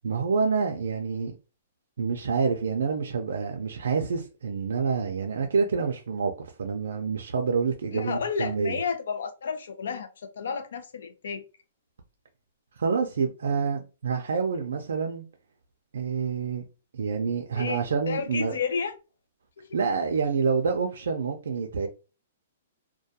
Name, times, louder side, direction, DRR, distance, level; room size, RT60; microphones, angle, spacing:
voice 1, 0.0-1.3 2.0-8.8 12.8-15.2 15.9-16.6 16.9-18.5 19.7-21.9, right 5 dB, 85° right, 0.4 m, -27 dB
voice 2, 7.9-10.1 10.4-11.4 17.5-18.9 19.6-19.8, left 6 dB, 70° left, 0.5 m, -31 dB
2.2 x 2.2 x 2.7 m
hypercardioid pair, 175°, 0 cm